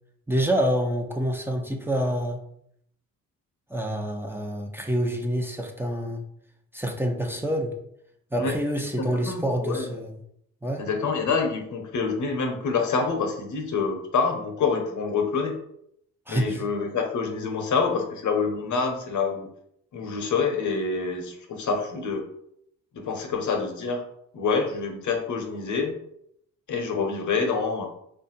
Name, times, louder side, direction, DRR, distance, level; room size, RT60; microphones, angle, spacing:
voice 1, 0.3-2.4 3.7-6.2 6.7-7.7 8.3-10.2 10.6-10.8 16.3-16.6, equal, 5° right, 1 dB, 0.8 m, -27 dB
voice 2, 9.1-9.9 10.8-15.5 16.3-19.5 19.9-22.2 22.9-24.0 24.3-26.0 26.7-27.9, left 5 dB, 60° left, 4 dB, 0.9 m, -26 dB
3.4 x 2.6 x 4.2 m, 0.71 s
supercardioid pair, 60°, 33 cm